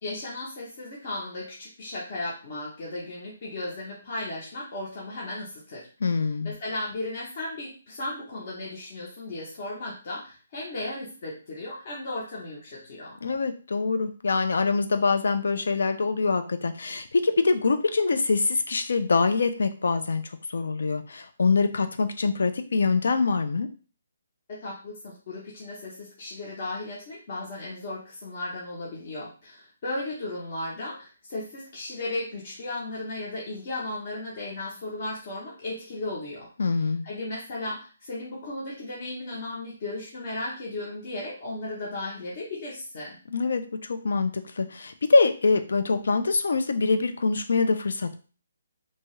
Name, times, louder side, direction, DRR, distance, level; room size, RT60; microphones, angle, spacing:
voice 1, 0.0-13.2 24.5-43.2, left 2 dB, 35° left, -5 dB, 0.7 m, -35 dB
voice 2, 6.0-6.5 13.2-20.2 20.5-23.7 36.6-37.1 43.3-48.2, left 4 dB, 70° left, 9 dB, 0.4 m, -24 dB
2.7 x 2.3 x 3.0 m, 0.37 s
hypercardioid pair, 175°, 0 cm